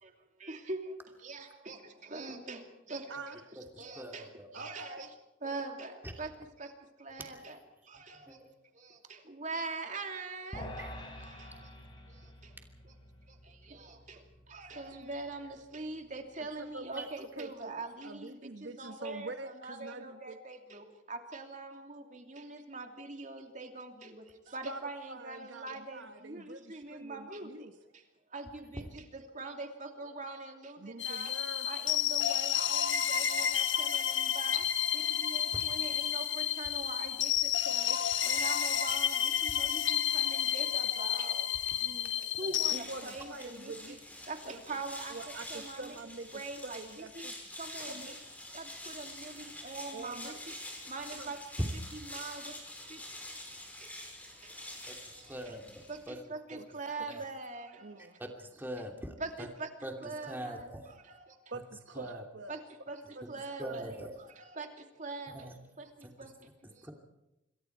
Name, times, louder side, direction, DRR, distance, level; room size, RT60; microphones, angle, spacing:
voice 1, 0.4-3.2 3.8-5.1 5.4-6.3 6.6-6.7 7.0-8.4 8.7-10.8 11.2-11.7 12.1-12.6 12.8-12.9 13.3-18.3 18.6-28.0 28.3-44.0 44.2-45.2 45.5-46.0 46.3-47.3 47.6-48.2 48.5-50.6 50.9-51.4 51.9-53.0 53.4-53.5 53.8-53.9 54.3-55.4 55.9-58.0 59.2-59.7 60.0-61.4 62.5-62.6 62.9-66.9, right 3 dB, 40° right, 4 dB, 2.8 m, -44 dB
voice 2, 3.1-3.4 4.5-5.1 16.6-17.1 17.4-17.8 18.0-20.4 24.7-24.8 25.1-27.7 30.8-31.7 42.7-44.0 44.5-44.6 45.1-47.3 47.9-48.2 49.9-50.4 51.2-51.3 56.6-56.7 57.1-57.3 57.8-58.2 61.5-62.5 63.1-63.2 63.6-64.1, right 2 dB, 70° right, 7 dB, 1.2 m, -45 dB
voice 3, 4.0-4.5 6.0-6.1 7.3-7.4 8.3-8.5 10.8-10.9 17.0-17.1 35.5-35.6 42.2-42.5 54.9-55.0 55.3-56.2 57.1-57.2 58.4-59.5 59.8-59.9 60.2-60.9 61.9-62.2 63.6-64.1 65.3-65.5 66.8-66.9, right 1 dB, 10° right, 2 dB, 2.8 m, -43 dB
sound 1, 10.5-16.9, left 1 dB, 25° left, 4.7 m, -49 dB
sound 2, 31.0-42.8, left 10 dB, 70° left, 1.3 m, -31 dB
sound 3, 42.5-56.2, left 1 dB, 10° left, 5.5 m, -46 dB
27.0 x 23.0 x 4.7 m, 0.93 s
head